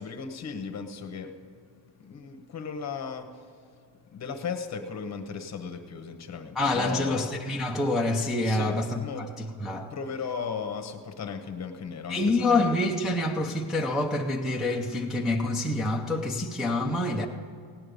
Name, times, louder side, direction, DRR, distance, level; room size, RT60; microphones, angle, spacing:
voice 1, 0.0-7.4 8.4-12.8, left 6 dB, 35° left, 7 dB, 1.1 m, -37 dB
voice 2, 6.6-9.9 12.1-17.3, left 2 dB, ahead, -2 dB, 0.5 m, -27 dB
17.5 x 9.7 x 5.3 m, 2.3 s
cardioid pair, 175°, 45 cm